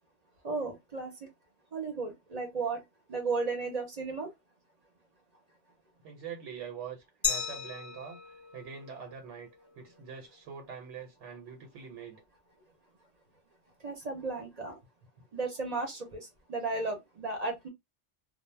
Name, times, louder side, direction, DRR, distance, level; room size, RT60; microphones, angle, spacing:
voice 1, 0.4-1.1 1.7-2.8 3.1-4.3 13.8-14.8 15.3-17.7, right 3 dB, 45° right, 0.6 m, -34 dB
voice 2, 6.0-8.2 8.5-9.5 9.8-12.2, right 7 dB, 85° right, 1.0 m, -44 dB
Glass, 7.2-10.0, left 5 dB, 15° left, 0.5 m, -36 dB
2.1 x 2.0 x 3.1 m
omnidirectional pair, 1.2 m